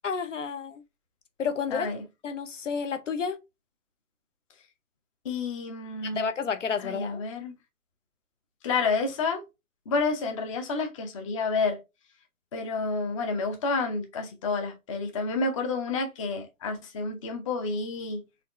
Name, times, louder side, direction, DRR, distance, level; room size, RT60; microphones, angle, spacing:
voice 1, 0.0-0.8 1.4-1.9 2.2-3.4 6.0-7.2, left 6 dB, 55° left, 0.6 m, -30 dB
voice 2, 1.7-2.0 5.2-6.3 6.8-7.5 8.6-9.4 9.9-11.8 12.5-18.2, left 4 dB, 25° left, 0.7 m, -29 dB
4.2 x 3.0 x 3.0 m
figure-of-eight pair, 130°, 44 cm